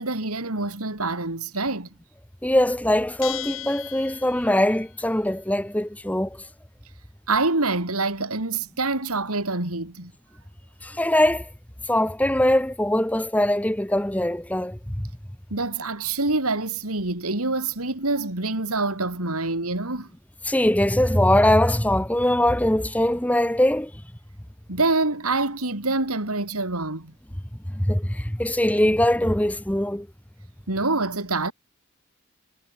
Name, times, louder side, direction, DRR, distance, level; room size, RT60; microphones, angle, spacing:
voice 1, 0.0-1.9 7.3-10.1 15.5-20.1 24.7-27.1 30.7-31.5, right 3 dB, 85° right, 3.8 m, -26 dB
voice 2, 2.4-6.4 10.8-11.5 11.9-15.1 20.4-23.9 27.7-30.1, left 1 dB, 5° left, 1.0 m, -22 dB
Bell, 3.2-4.8, left 14 dB, 65° left, 2.6 m, -36 dB
head